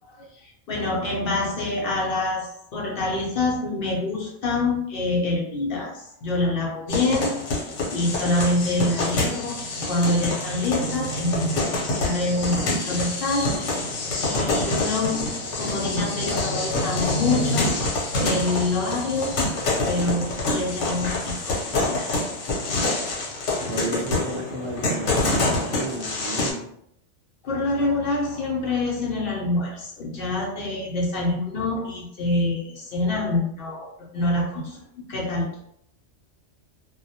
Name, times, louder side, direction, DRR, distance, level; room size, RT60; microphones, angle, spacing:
voice 1, 0.2-7.4 7.9-9.6 9.9-17.7 18.2-19.4 19.8-22.1 27.4-34.8 35.1-35.5, left 2 dB, 60° left, -2 dB, 0.7 m, -26 dB
sound 1, 6.9-26.5, left 2 dB, 80° left, 1.0 m, -26 dB
voice 2, 23.7-26.7, right 2 dB, 50° right, -1 dB, 0.5 m, -33 dB
2.2 x 2.0 x 2.7 m, 0.71 s
omnidirectional pair, 1.2 m